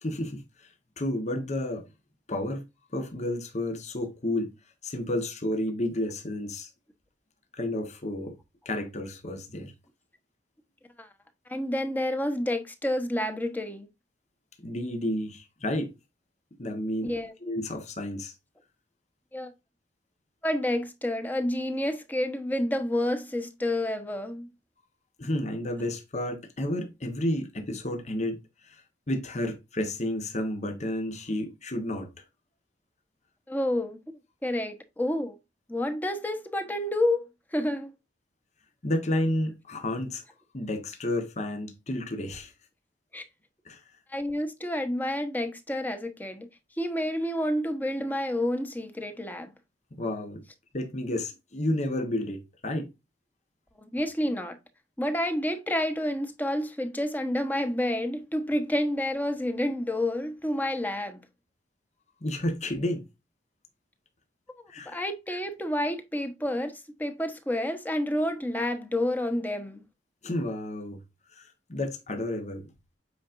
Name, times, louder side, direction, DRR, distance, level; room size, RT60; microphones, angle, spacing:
voice 1, 0.0-1.9 2.3-2.6 2.9-4.5 4.8-6.7 7.5-8.4 8.6-9.7 14.6-15.9 16.6-17.1 17.4-18.3 25.2-32.1 38.8-40.2 40.5-42.5 43.6-43.8 49.9-50.4 50.7-52.9 62.2-63.1 64.7-65.0 70.2-71.0 71.3-72.7, left 1 dB, 40° left, 1.3 m, -31 dB
voice 2, 11.5-13.9 17.0-17.3 19.3-19.5 20.4-24.5 33.5-35.4 35.7-37.3 37.5-37.9 43.1-43.2 44.1-46.5 46.8-49.5 53.9-54.6 55.0-61.2 64.8-69.8, left 1 dB, 10° left, 1.1 m, -29 dB
8.6 x 5.0 x 2.6 m
head